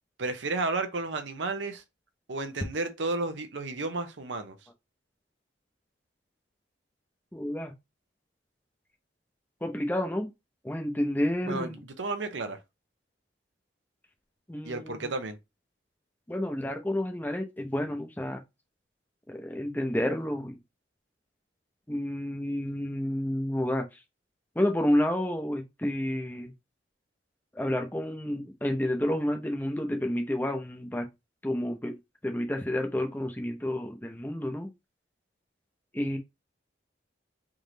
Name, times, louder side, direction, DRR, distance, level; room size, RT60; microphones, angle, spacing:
voice 1, 0.2-1.8 2.3-4.6 11.4-12.6 14.6-15.4, right 3 dB, 85° right, 0.8 m, -32 dB
voice 2, 7.3-7.7 9.6-10.3 10.6-11.8 14.5-15.1 16.3-18.4 19.3-20.6 21.9-23.9 24.6-26.5 27.5-31.1 31.4-32.0 32.2-34.7 35.9-36.2, left 1 dB, 10° left, 0.7 m, -30 dB
3.7 x 3.1 x 3.9 m
head